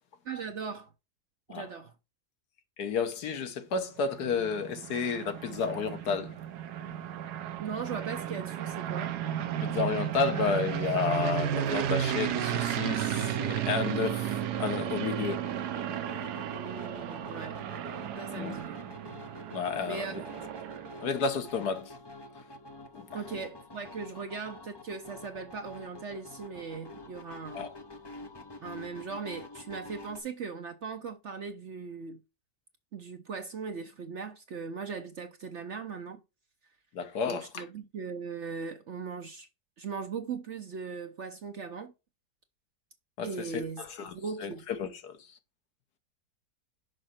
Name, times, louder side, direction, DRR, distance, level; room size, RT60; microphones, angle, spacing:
voice 1, 0.2-0.9 1.5-1.9 7.6-9.1 16.5-17.6 18.2-18.8 19.9-20.3 23.1-27.6 28.6-32.2 32.9-36.2 37.3-39.5 39.8-41.9 43.2-43.8 44.1-44.6, right 5 dB, 55° right, 0.9 m, -39 dB
voice 2, 2.8-6.4 9.6-15.5 18.4-18.5 19.5-20.2 21.0-21.9 22.9-23.4 27.5-27.7 36.9-37.6 43.2-45.4, left 5 dB, 70° left, 1.5 m, -32 dB
sound 1, 4.0-21.2, right 10 dB, 75° right, 1.2 m, -34 dB
sound 2, 13.1-30.2, left 2 dB, 30° left, 0.5 m, -47 dB
6.4 x 5.3 x 4.3 m
omnidirectional pair, 1.8 m